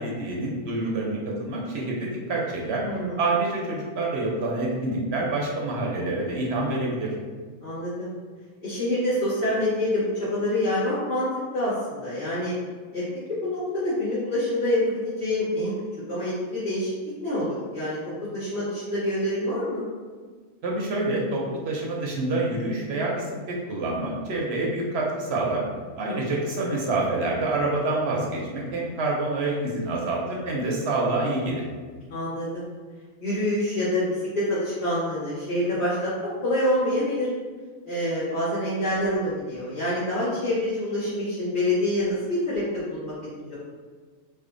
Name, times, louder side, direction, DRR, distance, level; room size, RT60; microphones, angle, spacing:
voice 1, 0.0-2.8 3.2-7.1 20.6-25.6 26.0-31.6, right 2 dB, 60° right, -2 dB, 0.7 m, -27 dB
voice 2, 2.8-3.2 7.6-8.1 8.6-12.5 12.9-13.0 13.4-15.7 16.1-16.9 17.2-18.0 18.3-19.8 26.0-26.3 32.1-32.7 33.2-37.3 37.8-43.1 43.4-43.5, left 1 dB, 30° left, -17 dB, 1.5 m, -26 dB
3.3 x 2.1 x 3.7 m, 1.5 s
omnidirectional pair, 1.5 m